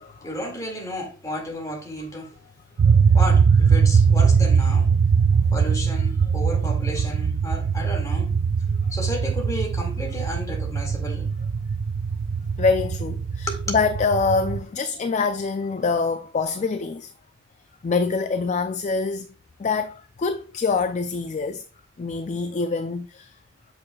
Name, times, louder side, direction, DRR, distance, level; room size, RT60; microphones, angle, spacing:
voice 1, 0.2-2.3 3.1-4.9 5.5-8.3 8.9-11.3 13.5-13.6, equal, 15° left, 2.1 m, -32 dB
sound 1, 2.8-14.6, right 6 dB, 65° right, 0.4 m, -21 dB
voice 2, 12.6-17.1 17.8-19.3 19.6-21.6 22.0-23.3, left 4 dB, 35° left, 0.3 m, -25 dB
8.6 x 6.4 x 2.3 m
head